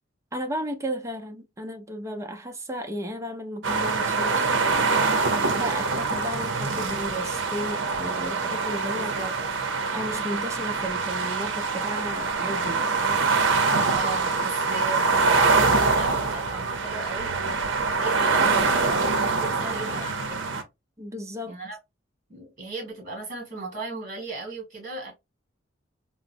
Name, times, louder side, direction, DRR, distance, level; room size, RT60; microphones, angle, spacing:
voice 1, 0.3-9.1 9.9-13.0 21.0-21.6, equal, 15° right, 0.6 m, -34 dB
sound 1, 3.6-20.6, right 4 dB, 70° right, 0.7 m, -24 dB
voice 2, 8.9-9.3 13.9-17.6 18.0-20.6 21.5-21.8 22.3-25.1, right 2 dB, 45° right, 1.7 m, -36 dB
3.9 x 2.0 x 2.6 m
head